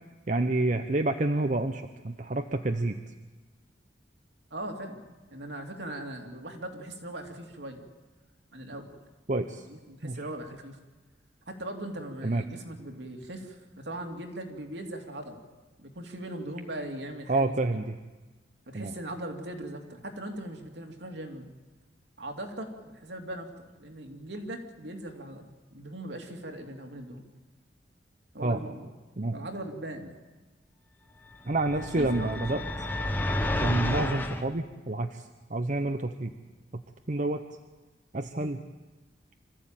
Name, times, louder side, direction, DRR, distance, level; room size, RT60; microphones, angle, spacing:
voice 1, 0.3-3.0 9.3-9.7 10.0-10.2 12.2-12.4 17.3-18.0 18.7-18.9 28.4-28.6 29.2-29.4 31.4-32.6 33.6-36.3 37.1-37.4 38.1-38.6, right 2 dB, 45° right, 7 dB, 0.9 m, -28 dB
voice 2, 4.5-7.8 8.5-9.0 9.7-10.8 11.5-15.4 15.8-17.5 18.7-21.5 22.2-27.2 28.3-28.9 29.3-30.2 31.8-32.7, right 1 dB, 70° right, 3 dB, 2.8 m, -39 dB
sound 1, 31.5-34.4, left 1 dB, 10° left, 1.4 m, -30 dB
26.0 x 14.5 x 9.0 m, 1.2 s
head